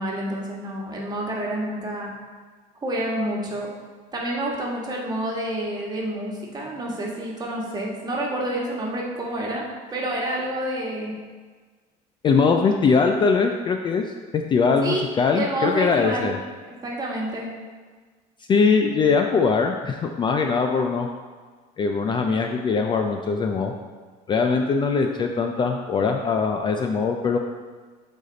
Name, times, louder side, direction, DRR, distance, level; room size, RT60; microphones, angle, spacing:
voice 1, 0.0-2.1 2.8-3.7 4.1-9.6 9.9-11.1 14.8-15.0 15.3-16.3 16.8-17.5, right 1 dB, 25° right, -2 dB, 1.5 m, -28 dB
voice 2, 12.2-14.1 14.3-16.4 18.5-21.1 21.8-23.7 24.3-27.4, left 5 dB, 30° left, 4 dB, 0.4 m, -21 dB
8.2 x 4.1 x 3.9 m, 1.5 s
cardioid pair, 130°, 17 cm